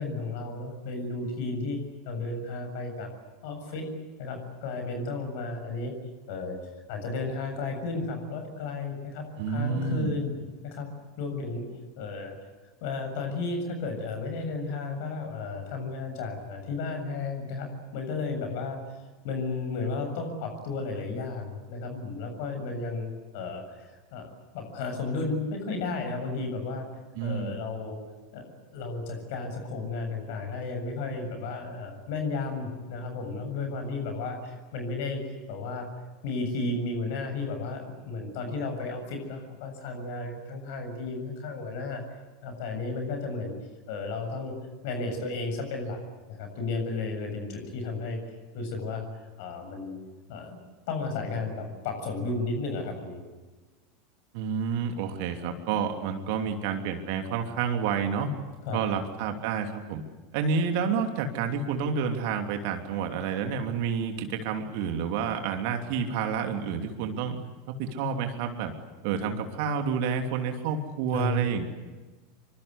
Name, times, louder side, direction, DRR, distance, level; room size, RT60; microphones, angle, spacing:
voice 1, 0.0-3.1 3.4-3.9 4.2-5.9 6.3-6.6 6.9-10.3 10.6-10.9 11.2-11.6 12.0-12.4 12.8-18.8 19.2-26.9 27.2-28.0 28.3-35.9 36.2-42.0 42.4-43.5 43.9-44.5 44.8-46.0 46.3-48.2 48.5-49.1 49.4-50.0 50.3-50.6 50.9-53.2 58.7-59.1 71.1-71.5, left 3 dB, 55° left, 5 dB, 7.3 m, -33 dB
voice 2, 9.4-10.1 27.2-27.6 54.3-58.3 58.7-60.0 60.3-67.4 67.7-68.7 69.0-71.6, right 6 dB, 55° right, 5 dB, 2.9 m, -29 dB
27.0 x 25.0 x 8.2 m, 1.2 s
figure-of-eight pair, 80°, 0 cm